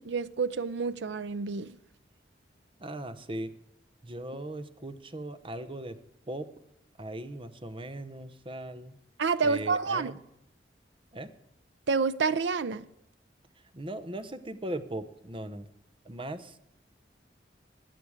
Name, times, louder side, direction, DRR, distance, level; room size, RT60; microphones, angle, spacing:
voice 1, 0.0-1.8 9.2-10.1 11.9-12.9, right 4 dB, 70° right, 0.5 m, -28 dB
voice 2, 2.8-3.5 4.0-6.0 6.3-6.5 7.0-9.0 9.4-10.2 11.1-11.3 13.7-15.7 16.0-16.6, right 1 dB, 30° right, 0.9 m, -38 dB
17.0 x 10.0 x 5.0 m
head